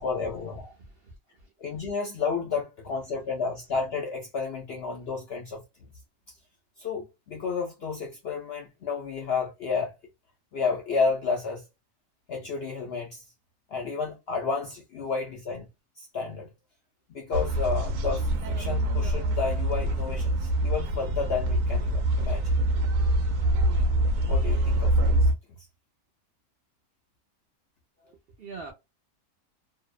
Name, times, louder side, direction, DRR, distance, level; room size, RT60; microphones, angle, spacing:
voice 1, 0.0-0.7 1.6-5.6 6.8-9.9 10.5-11.6 12.3-13.2 13.7-15.7 16.0-16.5 17.1-22.5 24.3-25.3, left 4 dB, 65° left, 0.6 m, -31 dB
voice 2, 0.8-1.5 28.1-28.7, right 4 dB, 60° right, 0.6 m, -44 dB
sound 1, 17.3-25.3, right 1 dB, 80° right, 1.0 m, -25 dB
2.7 x 2.0 x 2.3 m
omnidirectional pair, 1.6 m